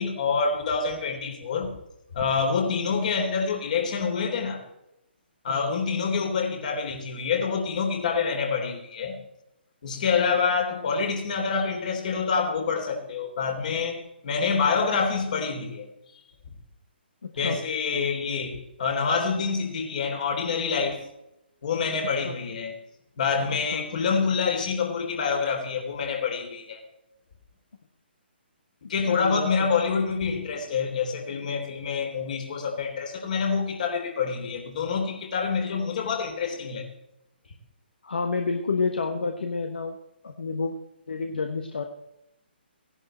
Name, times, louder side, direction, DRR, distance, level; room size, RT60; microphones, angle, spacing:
voice 1, 0.0-1.7 2.1-4.6 5.4-9.2 9.8-15.9 17.4-21.0 21.6-22.8 23.2-26.8 28.9-36.9, left 5 dB, 45° left, 3 dB, 3.4 m, -27 dB
voice 2, 17.2-17.6 22.2-22.4 23.7-23.8 29.1-29.7 37.4-37.5 38.0-40.0 40.2-40.8 41.1-41.8, left 4 dB, 60° left, 5 dB, 1.4 m, -29 dB
17.0 x 11.0 x 4.4 m, 0.86 s
figure-of-eight pair, 130°, 6 cm